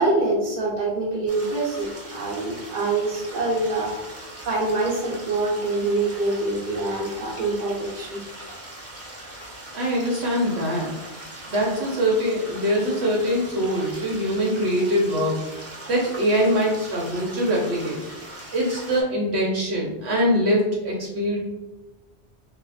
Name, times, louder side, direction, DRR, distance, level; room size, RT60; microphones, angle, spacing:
voice 1, 0.0-8.2, right 2 dB, 45° right, -4 dB, 1.1 m, -25 dB
sound 1, 1.3-19.0, right 1 dB, 15° right, 0.8 m, -40 dB
voice 2, 9.7-10.9 11.5-15.6 15.9-18.0 18.5-21.4, equal, 70° right, -3 dB, 1.1 m, -23 dB
3.6 x 2.0 x 4.0 m, 1.0 s
omnidirectional pair, 1.2 m